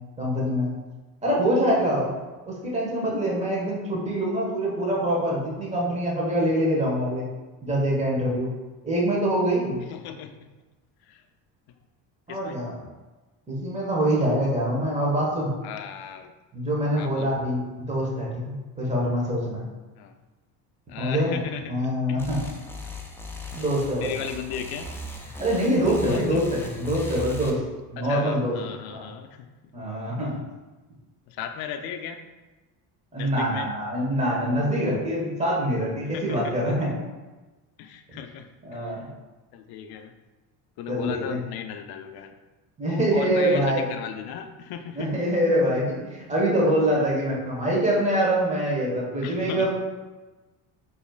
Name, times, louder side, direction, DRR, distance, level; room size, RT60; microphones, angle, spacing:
voice 1, 0.2-0.7 1.2-2.1 2.5-7.2 7.6-8.5 8.8-9.8 12.3-12.7 13.5-15.5 16.5-19.6 21.0-21.4 21.7-22.4 23.5-24.1 25.4-27.6 27.9-28.5 28.9-29.1 29.7-30.3 33.1-36.9 38.1-38.2 38.6-39.1 40.9-41.4 42.8-43.9 44.9-49.7, equal, 15° right, -4 dB, 1.3 m, -24 dB
voice 2, 9.9-10.5 11.1-11.2 12.3-12.6 15.6-16.3 17.0-17.3 20.0-20.2 20.9-21.7 22.1-22.3 24.0-24.9 25.9-26.4 28.0-29.5 31.3-32.2 33.1-33.7 36.0-36.5 37.8-39.0 39.5-40.1 40.8-42.3 42.8-45.3 49.2-49.7, left 8 dB, 60° left, 7 dB, 0.5 m, -36 dB
sound 1, 22.2-27.5, left 1 dB, 5° left, 0.3 m, -38 dB
4.2 x 3.0 x 2.3 m, 1.2 s
supercardioid pair, 95°, 42 cm